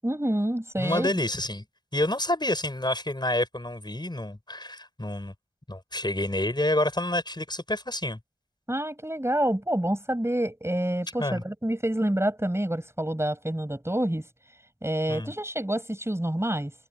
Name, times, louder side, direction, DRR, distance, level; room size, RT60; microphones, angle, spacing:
voice 1, 0.0-1.2 8.7-14.2 14.8-16.7, right 1 dB, 15° right, 7.0 m, -27 dB
voice 2, 0.8-1.6 1.9-5.3 5.7-8.2 11.2-11.4 15.1-15.3, left 1 dB, 25° left, 7.7 m, -28 dB
wide cardioid pair, 55°, 18 cm